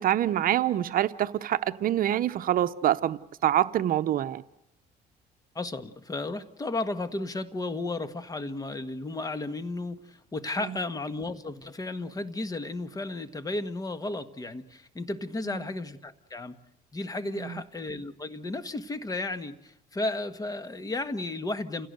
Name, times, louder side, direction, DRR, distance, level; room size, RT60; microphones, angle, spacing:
voice 1, 0.0-4.4 10.7-10.8 15.5-15.6 17.4-17.6, right 12 dB, 55° right, 0.8 m, -26 dB
voice 2, 5.5-16.5 16.9-21.9, left 2 dB, 20° left, 1.5 m, -34 dB
29.0 x 17.0 x 8.0 m
cardioid pair, 110°, 17 cm